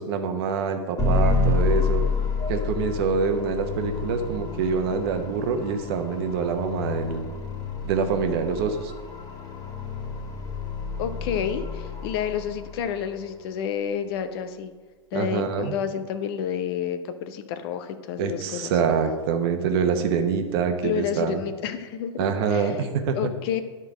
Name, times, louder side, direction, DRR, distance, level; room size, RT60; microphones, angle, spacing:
voice 1, 0.0-2.0 2.5-7.3 7.8-8.9 15.1-15.8 18.2-21.4 22.2-23.3, right 6 dB, 50° right, 6 dB, 1.0 m, -25 dB
sound 1, 1.0-13.1, left 4 dB, 20° left, 1.8 m, -29 dB
voice 2, 11.0-14.7 15.1-18.7 20.8-22.2 22.5-22.7 23.2-23.6, left 8 dB, 50° left, 10 dB, 0.7 m, -29 dB
10.5 x 4.5 x 4.8 m, 1.4 s
hypercardioid pair, 105°, 16 cm